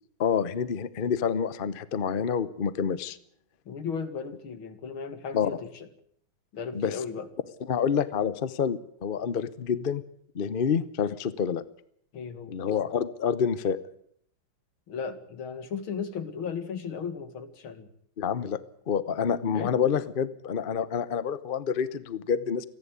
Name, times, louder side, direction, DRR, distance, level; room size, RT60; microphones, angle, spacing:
voice 1, 0.2-3.2 5.3-5.6 6.7-7.0 7.7-10.0 10.3-11.6 12.5-13.8 18.2-18.6 18.9-22.6, left 7 dB, 45° left, 16 dB, 0.7 m, -28 dB
voice 2, 3.7-5.6 6.5-7.3 12.1-12.5 14.9-17.9 19.5-19.7, left 6 dB, 85° left, 10 dB, 2.7 m, -35 dB
28.5 x 11.0 x 9.6 m, 0.67 s
omnidirectional pair, 2.2 m